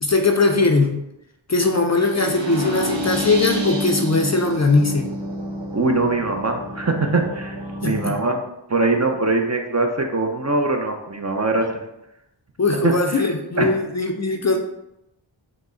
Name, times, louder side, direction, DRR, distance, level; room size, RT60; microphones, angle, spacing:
voice 1, 0.0-1.0 1.5-5.1 7.8-8.2 12.6-14.6, left 3 dB, 35° left, 4 dB, 0.5 m, -20 dB
sound 1, 2.0-8.0, equal, 70° right, 0.9 m, -29 dB
voice 2, 5.7-8.4 8.7-11.8 12.8-13.0 13.6-13.7, right 2 dB, 35° right, 3 dB, 0.6 m, -22 dB
5.8 x 2.1 x 3.8 m, 0.87 s
wide cardioid pair, 45°, 47 cm